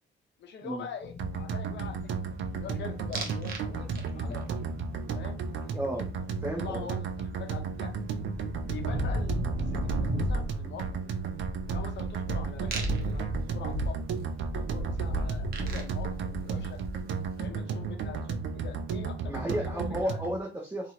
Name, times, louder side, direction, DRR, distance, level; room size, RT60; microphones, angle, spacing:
voice 1, 0.4-2.3 2.6-3.9 4.1-4.6 5.1-5.7 6.5-7.9 8.7-9.4 10.0-11.1 11.7-14.0 14.5-16.8 17.4-20.2, left 7 dB, 65° left, 5 dB, 0.7 m, -44 dB
sound 1, 1.0-10.4, left 6 dB, 35° left, 0.4 m, -45 dB
sound 2, 1.2-20.4, right 5 dB, 70° right, 0.5 m, -34 dB
sound 3, 3.1-3.6 4.0-4.4 6.9-7.0 7.2-17.3, right 1 dB, 50° right, 0.8 m, -34 dB
voice 2, 5.7-6.0 6.4-6.9 9.4-9.5 19.3-20.9, equal, 10° right, -2 dB, 0.7 m, -33 dB
2.9 x 2.5 x 2.8 m, 0.30 s
cardioid pair, 90°, 20 cm